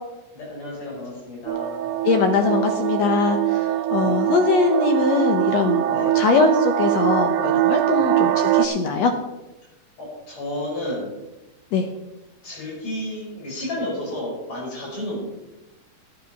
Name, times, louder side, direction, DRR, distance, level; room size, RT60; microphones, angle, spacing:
voice 1, 0.3-1.9 4.0-4.2 5.8-6.2 8.0-8.2 10.0-11.1 12.4-15.2, left 1 dB, 50° left, -4 dB, 6.7 m, -32 dB
sound 1, 1.5-8.7, right 13 dB, 90° right, 2.5 m, -22 dB
voice 2, 2.0-9.1 11.7-11.9, left 5 dB, 70° left, 6 dB, 1.7 m, -21 dB
12.0 x 8.6 x 5.9 m, 0.99 s
omnidirectional pair, 4.0 m